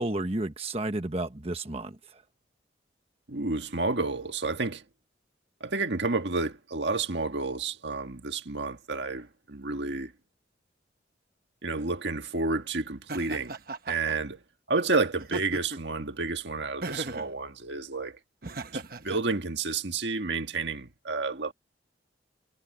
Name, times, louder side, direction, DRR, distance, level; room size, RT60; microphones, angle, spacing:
voice 1, 0.0-2.2, right 2 dB, 30° right, 1.2 m, -32 dB
voice 2, 3.3-4.8 5.6-10.1 11.6-13.5 13.9-14.4 14.7-18.2 18.7-21.5, right 3 dB, 70° right, 1.7 m, -30 dB
Laughter, 13.1-14.2 15.2-15.9 16.8-17.3 18.4-19.2, right 2 dB, 50° right, 1.1 m, -36 dB
head